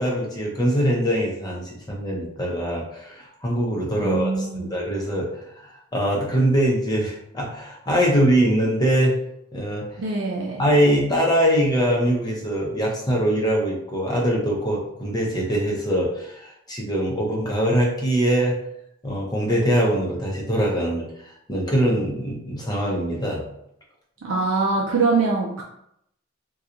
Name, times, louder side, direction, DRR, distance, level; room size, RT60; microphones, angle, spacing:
voice 1, 0.0-9.2 9.5-10.0 10.6-18.6 19.0-23.4, equal, 20° left, -3 dB, 0.7 m, -23 dB
voice 2, 4.0-4.7 10.0-10.6 24.2-25.6, right 4 dB, 65° right, -2 dB, 0.5 m, -23 dB
2.8 x 2.3 x 3.7 m, 0.76 s
head